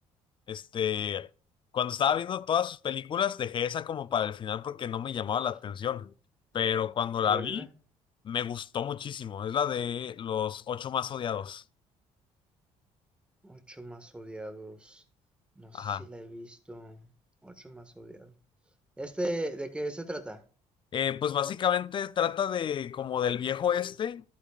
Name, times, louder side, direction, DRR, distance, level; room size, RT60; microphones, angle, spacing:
voice 1, 0.5-1.3 1.7-6.1 6.5-7.7 8.2-11.6 15.7-16.0 20.9-24.2, left 9 dB, 40° left, 0.5 m, -30 dB
voice 2, 7.2-7.7 13.4-15.0 15.6-17.1 17.4-18.3 19.0-20.4, right 1 dB, 10° right, 1.6 m, -38 dB
11.5 x 8.6 x 2.4 m
cardioid pair, 105°, 13 cm